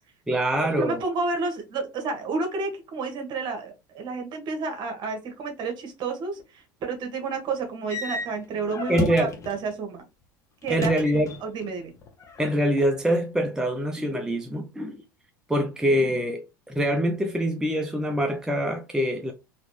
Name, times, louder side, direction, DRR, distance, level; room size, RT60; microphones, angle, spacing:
voice 1, 0.3-1.0 8.9-9.3 10.7-11.3 12.4-15.0 15.5-19.3, equal, 5° right, 0.6 m, -24 dB
voice 2, 0.8-10.0 10.6-10.9 11.4-11.9, right 4 dB, 45° right, 1.5 m, -30 dB
sound 1, 7.9-9.6 10.6-11.7 12.0-12.8, left 3 dB, 30° left, 1.3 m, -33 dB
4.1 x 3.0 x 3.2 m
hypercardioid pair, 80°, 11 cm